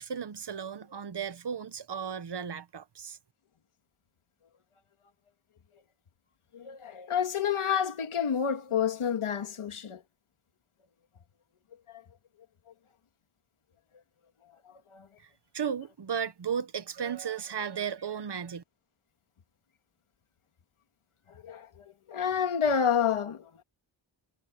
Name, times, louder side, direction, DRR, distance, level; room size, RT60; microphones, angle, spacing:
voice 1, 0.0-3.2 15.2-15.3 15.5-18.6, right 7 dB, 55° right, 1.3 m, -35 dB
voice 2, 6.5-10.0 11.9-12.0 14.7-15.1 21.3-23.6, left 7 dB, 85° left, 2.4 m, -29 dB
wide cardioid pair, 160°, 49 cm